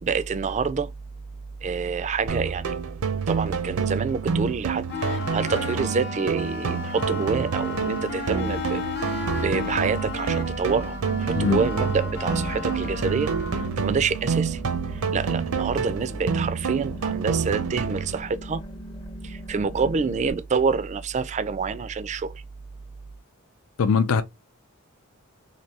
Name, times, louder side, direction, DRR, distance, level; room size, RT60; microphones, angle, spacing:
voice 1, 0.0-0.9 1.6-2.8 3.1-18.6 19.2-22.4, right 5 dB, 35° right, 0.3 m, -27 dB
sound 1, 2.3-18.3, right 6 dB, 80° right, 0.6 m, -28 dB
sound 2, 4.9-13.7, left 4 dB, 50° left, 0.8 m, -33 dB
voice 2, 11.3-11.7 23.8-24.2, left 5 dB, 90° left, 0.4 m, -21 dB
sound 3, 11.6-20.3, right 1 dB, 20° left, 0.6 m, -39 dB
3.2 x 2.6 x 2.8 m
head